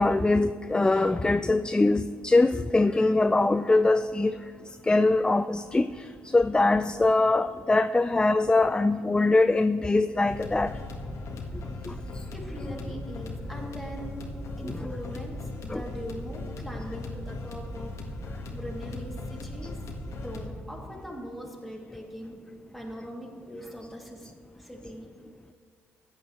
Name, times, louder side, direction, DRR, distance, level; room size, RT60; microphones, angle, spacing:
voice 1, 0.0-4.4 4.8-6.1 6.3-10.7 11.9-12.0 14.6-14.8 15.7-15.9, left 2 dB, 15° left, 11 dB, 0.3 m, -23 dB
sound 1, 10.3-20.5, left 2 dB, 60° left, 1.6 m, -38 dB
voice 2, 11.5-14.2 14.6-17.9 18.5-19.7 20.1-22.4 22.7-24.3 24.5-25.1, equal, ahead, -2 dB, 2.7 m, -41 dB
14.5 x 8.8 x 3.2 m, 2.1 s
hypercardioid pair, 55°, 6 cm